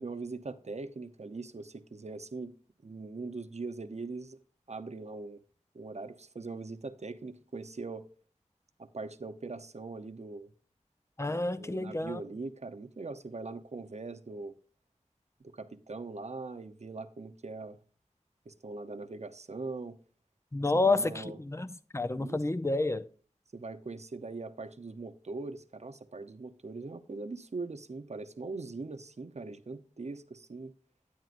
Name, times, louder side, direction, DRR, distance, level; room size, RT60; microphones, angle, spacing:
voice 1, 0.0-2.5 2.8-4.4 4.7-5.4 5.7-8.1 8.8-10.5 11.3-14.5 15.4-17.8 18.5-20.0 20.8-21.4 22.1-22.4 23.5-30.7, right 3 dB, 60° right, 0.7 m, -41 dB
voice 2, 11.2-12.2 20.5-23.1, left 2 dB, 20° left, 0.5 m, -29 dB
10.0 x 9.2 x 2.5 m
wide cardioid pair, 60°, 13 cm